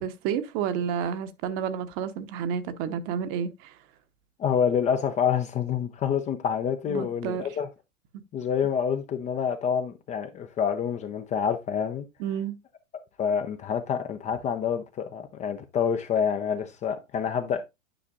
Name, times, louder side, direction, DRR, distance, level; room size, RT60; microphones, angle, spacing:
voice 1, 0.0-3.8 6.9-7.4 12.2-12.5, right 8 dB, 35° right, 1.0 m, -30 dB
voice 2, 4.4-7.7 8.3-12.1 13.2-17.6, left 7 dB, 20° left, 0.6 m, -27 dB
10.0 x 6.0 x 2.5 m
figure-of-eight pair, 100°, 38 cm